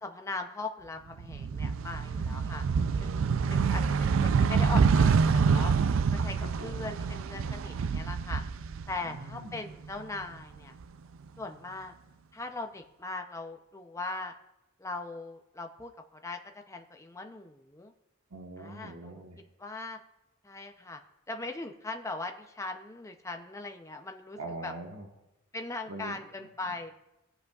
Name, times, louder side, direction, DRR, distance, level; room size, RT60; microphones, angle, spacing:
voice 1, 0.0-2.6 3.0-5.7 6.1-8.4 8.9-10.7 11.4-11.9 12.3-14.3 14.8-15.9 16.2-16.4 16.7-17.9 18.6-19.2 19.6-20.0 20.4-21.0 21.3-24.7 25.5-26.9, left 3 dB, 15° left, 5 dB, 0.5 m, -39 dB
sound 1, 1.2-9.3 9.7-10.8, right 5 dB, 65° right, 0.4 m, -26 dB
voice 2, 6.4-6.8 9.0-9.6 18.3-19.4 24.4-25.1 25.9-26.2, right 2 dB, 80° right, 2 dB, 1.2 m, -43 dB
18.5 x 7.7 x 2.4 m, 0.96 s
head